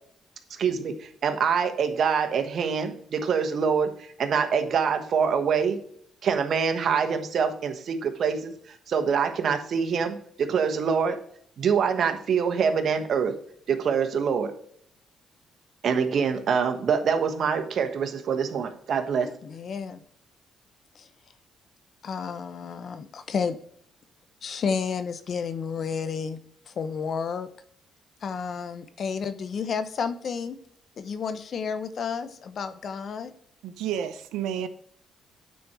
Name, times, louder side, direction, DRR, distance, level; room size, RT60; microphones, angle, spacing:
voice 1, 0.6-5.8 6.2-8.5 8.9-11.2 11.6-13.4 13.7-14.5 15.8-19.3, right 6 dB, 60° right, 6 dB, 1.3 m, -25 dB
voice 2, 19.2-20.0 20.9-21.1 22.0-23.6 24.4-26.4 26.7-27.5 28.2-30.6 31.0-33.3, left 6 dB, 55° left, 11 dB, 0.9 m, -31 dB
voice 3, 33.6-34.7, right 9 dB, 90° right, 11 dB, 0.7 m, -30 dB
9.4 x 4.4 x 4.9 m, 0.63 s
cardioid pair, 90°, 0 cm